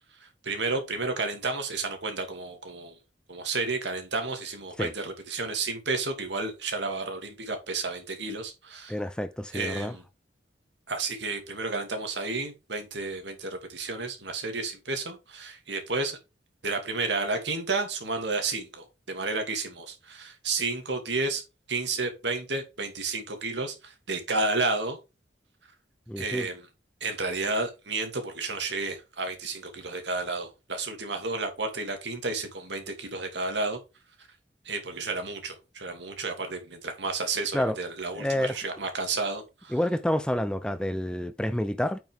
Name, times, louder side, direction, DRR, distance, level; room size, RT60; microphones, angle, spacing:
voice 1, 0.4-3.0 3.3-9.0 9.5-10.0 10.9-16.2 16.6-21.4 21.7-25.0 26.2-26.6 27.0-33.8 34.7-39.7, right 3 dB, 70° right, 2.6 m, -31 dB
voice 2, 8.9-9.9 26.1-26.5 37.5-37.8 38.1-38.6 39.7-42.0, left 1 dB, 5° left, 0.6 m, -28 dB
9.1 x 5.8 x 3.5 m
head